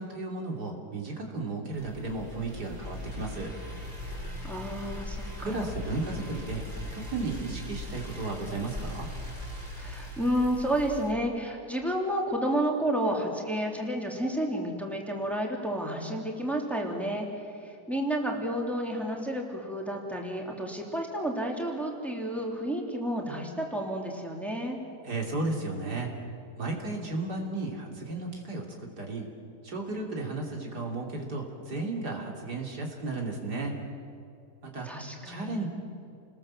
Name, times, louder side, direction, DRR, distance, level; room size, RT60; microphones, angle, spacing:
voice 1, 0.0-3.5 5.4-6.6 6.9-9.1 25.0-26.1 26.6-28.7 29.0-29.3 29.6-33.7 34.6-34.9 35.2-35.7, right 3 dB, 75° right, 1 dB, 3.7 m, -34 dB
sound 1, 1.7-11.1, left 1 dB, 35° right, 4.8 m, -39 dB
voice 2, 4.4-5.7 9.7-24.8 34.8-35.7, right 1 dB, ahead, 0 dB, 3.1 m, -31 dB
29.5 x 21.0 x 7.5 m, 2.5 s
omnidirectional pair, 1.8 m